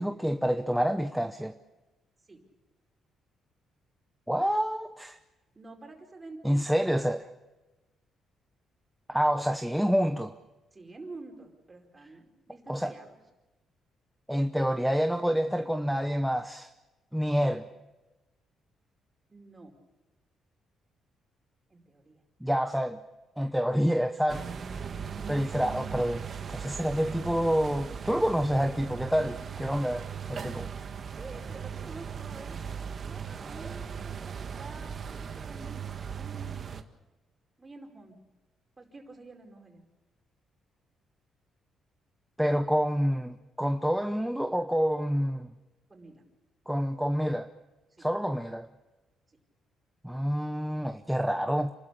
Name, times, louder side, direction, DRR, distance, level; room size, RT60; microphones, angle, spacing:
voice 1, 0.0-1.5 4.3-5.2 6.4-7.3 9.1-10.3 12.7-12.9 14.3-16.7 17.1-17.6 22.4-23.0 23.4-24.5 25.3-26.2 26.5-30.7 42.4-45.5 46.7-47.5 48.0-48.7 50.0-51.7, equal, ahead, 0.9 m, -28 dB
voice 2, 5.5-6.7 10.7-13.2 19.3-19.7 21.7-22.2 31.2-35.8 36.1-36.8 37.6-38.2 38.8-39.8 45.9-46.2 47.9-48.0, right 3 dB, 25° right, 4.7 m, -48 dB
sound 1, 24.3-36.8, right 7 dB, 45° right, 1.5 m, -38 dB
28.0 x 12.5 x 8.5 m
cardioid pair, 90°, 0 cm